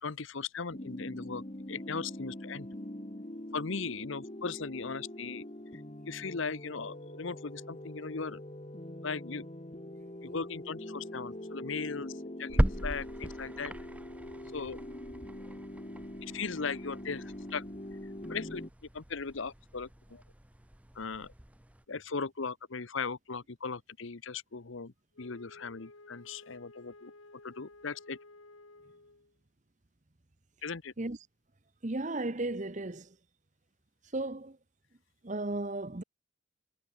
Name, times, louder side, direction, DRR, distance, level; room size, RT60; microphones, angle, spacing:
voice 1, 0.0-2.7 3.5-5.4 5.7-8.4 9.0-9.5 10.2-12.1 12.4-13.7 14.5-14.8 16.2-17.6 18.3-18.6 18.9-20.2 20.9-21.3 21.9-27.1 27.4-28.2 30.6-30.9, left 5 dB, 70° left, 0.9 m, -38 dB
sound 1, 0.7-18.7, left 1 dB, 30° left, 1.6 m, -44 dB
sound 2, 12.5-21.9, equal, 5° right, 0.7 m, -37 dB
Wind instrument woodwind instrument, 25.1-29.4, left 2 dB, 90° left, 3.4 m, -54 dB
voice 2, 31.8-33.1 34.1-34.6 35.2-36.0, right 2 dB, 35° right, 1.0 m, -34 dB
head